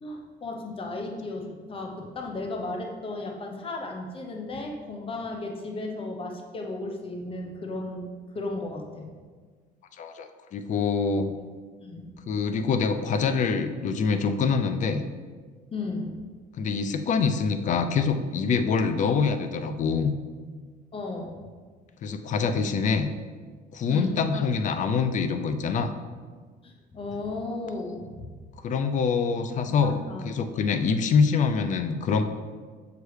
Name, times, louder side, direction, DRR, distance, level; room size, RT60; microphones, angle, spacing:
voice 1, 0.0-9.1 11.1-11.2 11.8-12.2 15.7-16.1 20.9-21.4 23.9-24.2 26.6-28.3 29.7-30.4, left 2 dB, 30° left, 2 dB, 0.9 m, -35 dB
voice 2, 10.0-11.3 12.3-15.0 16.6-20.1 22.0-23.1 23.7-25.9 28.6-32.2, left 5 dB, 50° left, 9 dB, 0.5 m, -25 dB
6.5 x 4.8 x 3.3 m, 1.5 s
cardioid pair, 110°, 17 cm